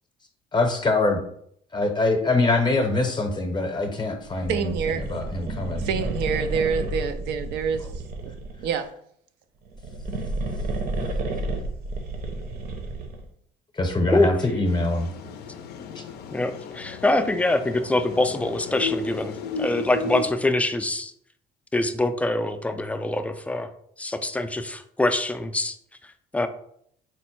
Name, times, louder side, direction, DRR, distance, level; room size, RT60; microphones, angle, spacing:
voice 1, 0.5-1.2 1.7-4.7 5.1-5.8 13.8-15.1, left 2 dB, 25° left, 4 dB, 0.7 m, -23 dB
sound 1, 4.3-8.7 9.6-13.3, right 2 dB, 60° right, 0.8 m, -31 dB
voice 2, 4.5-5.1 5.8-7.9 8.2-8.9, right 6 dB, 85° right, 8 dB, 0.4 m, -27 dB
sound 2, 14.7-20.3, left 4 dB, 75° left, 0.4 m, -34 dB
voice 3, 16.3-21.1 21.7-23.7 24.0-25.8 26.3-26.5, left 2 dB, 10° left, 8 dB, 0.3 m, -24 dB
4.3 x 2.1 x 4.4 m, 0.67 s
cardioid pair, 110°, 17 cm